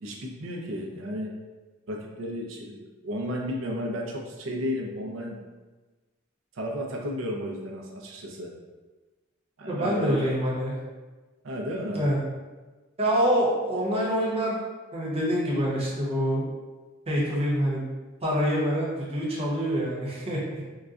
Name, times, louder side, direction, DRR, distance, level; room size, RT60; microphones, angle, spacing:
voice 1, 0.0-1.3 1.9-2.8 3.0-5.4 6.6-8.5 9.6-10.3 11.4-12.0, equal, 75° right, -1 dB, 0.5 m, -33 dB
voice 2, 9.7-10.7 11.9-12.2 13.0-14.6 14.9-16.4 17.1-17.8 18.2-20.4, equal, 30° right, -6 dB, 0.8 m, -26 dB
3.8 x 2.2 x 2.4 m, 1.2 s
head